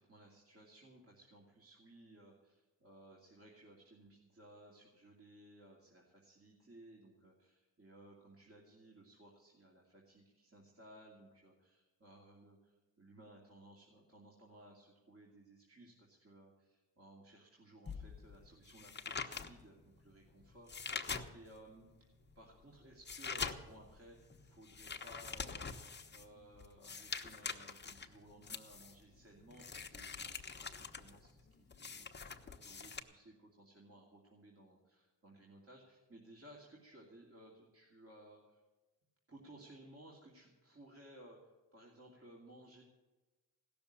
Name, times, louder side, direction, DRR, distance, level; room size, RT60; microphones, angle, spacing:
voice 1, 0.0-21.9 22.3-25.7 26.1-38.6 39.3-42.8, right 1 dB, 35° right, -2 dB, 2.7 m, -59 dB
sound 1, 17.9-21.7 22.1-33.0, left 5 dB, 25° left, 1.1 m, -45 dB
16.5 x 6.9 x 10.0 m, 1.2 s
cardioid pair, 95°, 41 cm